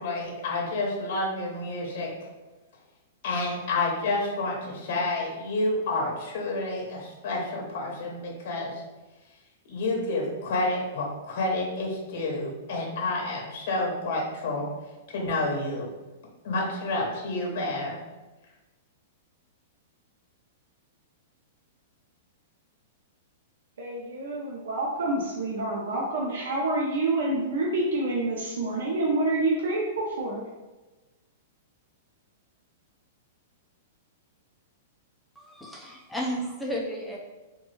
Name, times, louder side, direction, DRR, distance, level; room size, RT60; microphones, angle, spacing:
voice 1, 0.0-2.1 3.2-8.8 9.7-14.7 15.1-15.9 16.4-18.0, left 2 dB, 50° left, -1 dB, 0.6 m, -29 dB
voice 2, 23.8-30.4, right 2 dB, 85° right, -2 dB, 0.5 m, -27 dB
voice 3, 35.4-37.2, equal, 5° left, -2 dB, 0.3 m, -33 dB
3.1 x 2.2 x 3.1 m, 1.1 s
supercardioid pair, 170°, 0 cm